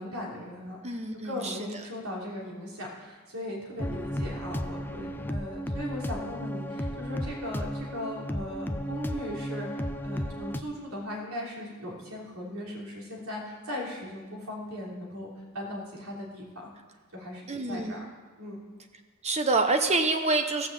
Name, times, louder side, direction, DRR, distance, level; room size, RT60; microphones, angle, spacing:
voice 1, 0.0-1.0 1.2-15.3 15.5-16.7 17.1-18.1 18.4-18.6, left 1 dB, 80° right, -2 dB, 3.2 m, -38 dB
voice 2, 0.8-1.7 17.5-18.1 19.2-20.7, right 3 dB, 30° right, 6 dB, 0.9 m, -27 dB
sound 1, 3.8-10.6, equal, 10° left, 0.5 m, -34 dB
16.5 x 6.1 x 7.4 m, 1.5 s
head